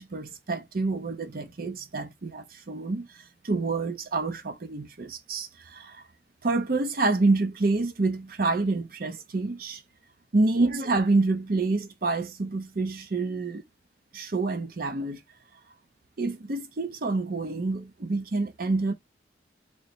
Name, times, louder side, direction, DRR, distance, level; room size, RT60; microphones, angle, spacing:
voice 1, 0.0-6.0 6.4-9.8 10.3-13.6 14.1-15.2 16.2-18.9, right 3 dB, 50° right, 0.6 m, -27 dB
3.1 x 2.1 x 3.9 m
head